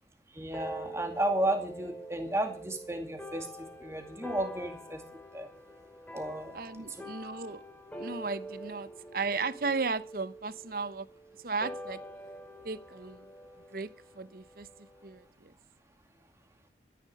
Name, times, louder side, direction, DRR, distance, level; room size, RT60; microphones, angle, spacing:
voice 1, 0.3-5.0 5.3-5.5 6.1-6.9, right 1 dB, 15° right, 5 dB, 2.3 m, -33 dB
sound 1, 0.5-15.3, right 1 dB, 10° left, 2.5 m, -46 dB
voice 2, 6.5-7.6 8.0-11.1 11.4-12.0 12.6-13.2 13.7-13.9 14.2-14.7 15.0-15.5, right 4 dB, 55° right, 15 dB, 0.8 m, -35 dB
13.5 x 10.0 x 6.4 m, 0.42 s
head